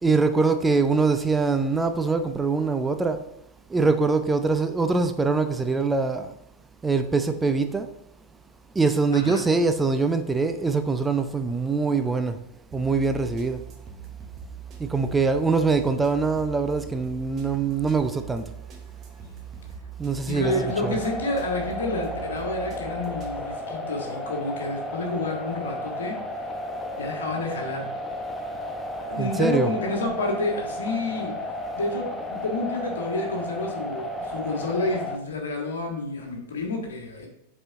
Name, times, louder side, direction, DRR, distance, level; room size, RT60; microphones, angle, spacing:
voice 1, 0.0-3.2 3.7-6.4 6.8-7.9 8.7-12.4 12.7-13.6 14.8-18.5 20.0-21.0 29.2-29.8, right 4 dB, 10° right, 0.5 m, -23 dB
sound 1, 12.7-23.4, right 7 dB, 30° right, 1.3 m, -42 dB
voice 2, 20.3-26.2 27.0-27.9 29.1-31.3 31.7-37.3, left 2 dB, 65° left, 1.7 m, -29 dB
sound 2, 20.4-35.2, left 1 dB, 15° left, 0.8 m, -33 dB
7.9 x 4.3 x 3.5 m
figure-of-eight pair, 90°, 0 cm